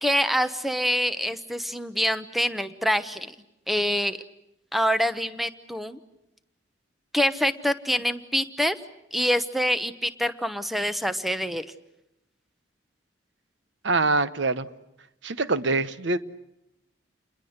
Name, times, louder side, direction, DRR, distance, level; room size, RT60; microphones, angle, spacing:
voice 1, 0.0-3.3 3.7-4.2 4.7-6.0 7.1-8.8 9.1-11.7, equal, ahead, 0.9 m, -25 dB
voice 2, 13.8-14.7 15.2-16.2, right 3 dB, 75° right, 1.0 m, -24 dB
29.0 x 22.0 x 8.0 m
head